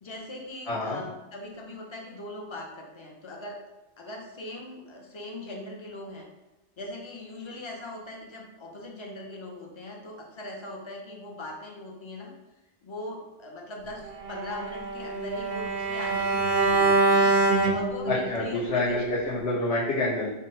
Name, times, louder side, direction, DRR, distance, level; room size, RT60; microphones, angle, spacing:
voice 1, 0.0-3.6 4.0-6.3 6.8-12.3 12.8-17.3 17.7-19.0, left 1 dB, 35° left, 0 dB, 0.5 m, -40 dB
voice 2, 0.7-1.0 18.1-20.3, left 2 dB, 65° left, -8 dB, 1.0 m, -27 dB
Bowed string instrument, 14.2-18.4, right 3 dB, 60° right, 0.5 m, -24 dB
3.6 x 2.1 x 4.1 m, 1.0 s
omnidirectional pair, 1.2 m